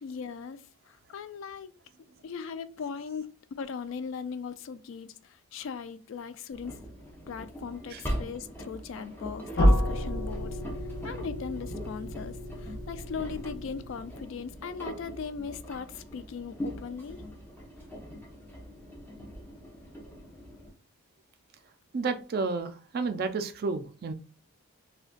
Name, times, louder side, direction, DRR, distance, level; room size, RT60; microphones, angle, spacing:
voice 1, 0.0-1.7 2.2-3.3 3.6-6.8 7.3-10.6 11.0-17.2, left 6 dB, 65° left, 0.3 m, -39 dB
Engine, 6.5-20.7, equal, 10° left, 0.5 m, -42 dB
sound 1, 9.6-14.4, equal, 45° left, 0.7 m, -29 dB
voice 2, 21.9-24.1, right 4 dB, 45° right, 0.3 m, -31 dB
3.7 x 2.2 x 2.4 m
head